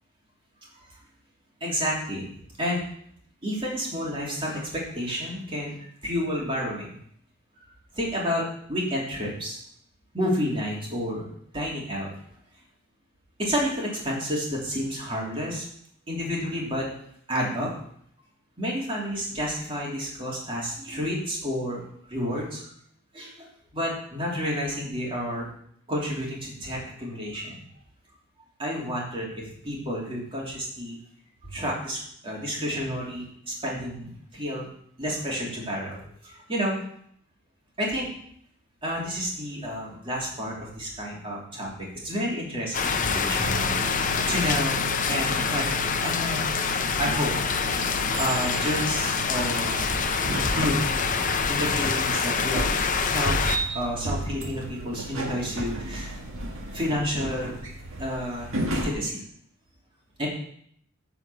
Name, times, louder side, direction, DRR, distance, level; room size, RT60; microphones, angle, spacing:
voice 1, 1.6-2.3 2.6-2.8 3.4-5.8 6.0-6.9 7.9-9.6 10.1-11.2 11.5-12.1 13.4-15.7 16.1-16.9 17.3-17.7 18.6-21.8 22.1-22.7 23.1-25.5 25.9-27.6 28.6-31.0 31.4-34.7 35.0-36.8 37.8-38.1 38.8-44.8 45.1-45.6 46.0-46.4 47.0-47.6 48.2-49.9 50.5-50.8 51.5-53.4 53.7-56.2 56.7-57.6 58.0-59.2 60.2-60.3, equal, 25° right, -4 dB, 3.0 m, -30 dB
sound 1, 42.7-53.6, left 5 dB, 40° left, 0.7 m, -26 dB
sound 2, 43.4-58.9, right 2 dB, 70° right, 1.7 m, -34 dB
9.8 x 5.0 x 6.9 m, 0.67 s
head